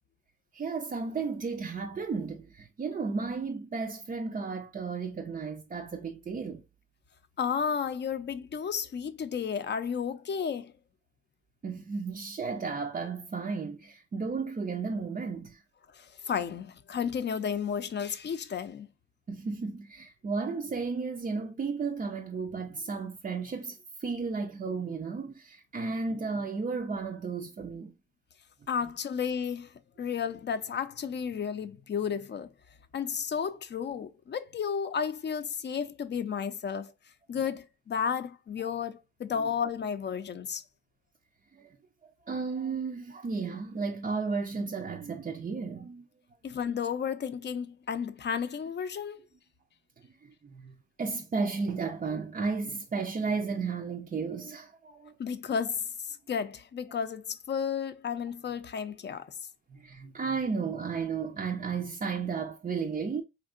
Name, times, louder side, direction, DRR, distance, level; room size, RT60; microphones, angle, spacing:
voice 1, 0.5-6.6 11.6-15.6 19.3-27.9 39.4-39.5 41.5-41.8 42.0-46.1 50.2-55.1 59.7-63.2, right 4 dB, 25° right, 0.4 m, -34 dB
voice 2, 7.4-10.7 15.9-18.9 28.7-29.7 30.0-32.5 32.9-36.9 37.3-40.6 46.4-49.3 55.2-59.3, left 7 dB, 35° left, 0.5 m, -32 dB
4.3 x 2.8 x 2.4 m
cardioid pair, 90°, 30 cm